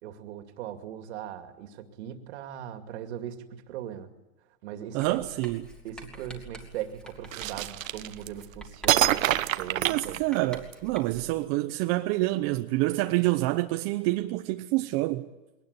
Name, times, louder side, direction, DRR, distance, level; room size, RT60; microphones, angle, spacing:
voice 1, 0.0-4.1 4.6-5.2 5.8-10.2, right 10 dB, 55° right, 2.5 m, -39 dB
voice 2, 4.9-5.7 9.8-15.3, right 18 dB, 30° right, 0.8 m, -27 dB
Writing, 5.0-11.4, right 2 dB, ahead, 2.6 m, -47 dB
sound 1, 7.3-8.4 8.9-10.7, right 13 dB, 75° right, 1.1 m, -26 dB
21.5 x 19.0 x 9.8 m
hypercardioid pair, 150°, 40 cm